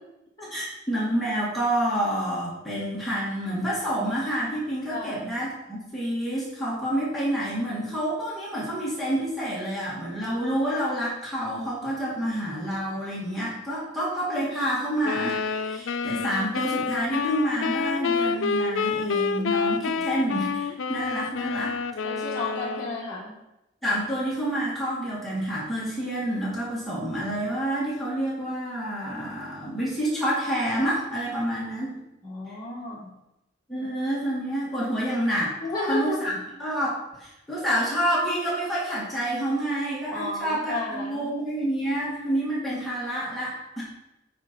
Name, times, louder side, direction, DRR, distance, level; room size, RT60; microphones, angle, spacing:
voice 1, 0.5-21.7 23.8-32.0 33.7-35.5 35.9-43.8, right 1 dB, ahead, -8 dB, 2.3 m, -28 dB
voice 2, 4.9-5.2 22.0-23.4 32.2-33.1 33.8-33.9 35.6-36.2 40.1-41.3, left 2 dB, 20° left, -8 dB, 2.2 m, -32 dB
sound 1, 15.0-23.0, left 5 dB, 85° left, 0.4 m, -28 dB
9.3 x 4.9 x 4.6 m, 0.91 s
head